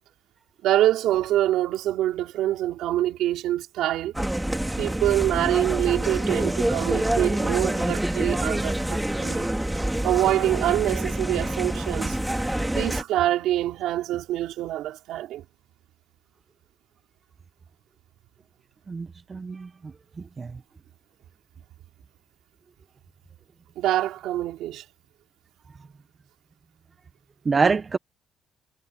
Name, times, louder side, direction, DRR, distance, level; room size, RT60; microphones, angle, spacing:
voice 1, 0.6-4.1 4.8-9.5 10.0-12.2 12.7-15.4 23.8-24.8, right 13 dB, 90° right, 4.7 m, -25 dB
sound 1, 4.1-13.0, right 1 dB, 5° right, 2.9 m, -26 dB
voice 2, 18.9-20.6 27.4-28.0, right 4 dB, 35° right, 1.2 m, -26 dB
cardioid pair, 90°, 0 cm